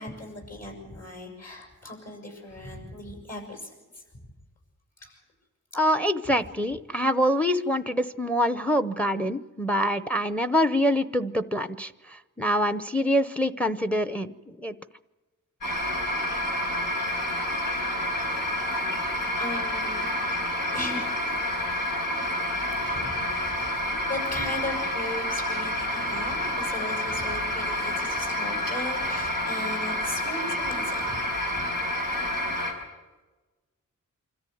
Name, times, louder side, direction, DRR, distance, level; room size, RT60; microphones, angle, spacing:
voice 1, 0.0-4.0 5.0-5.2 19.4-20.1 20.7-21.4 22.8-23.7 24.1-31.2, left 2 dB, 50° left, 2 dB, 7.0 m, -37 dB
voice 2, 5.7-11.9 12.4-14.3 14.6-14.8, equal, 5° left, 13 dB, 0.7 m, -25 dB
sound 1, 15.6-32.7, left 1 dB, 90° left, 5.3 m, -29 dB
25.5 x 14.0 x 9.3 m, 1.2 s
wide cardioid pair, 145°, 32 cm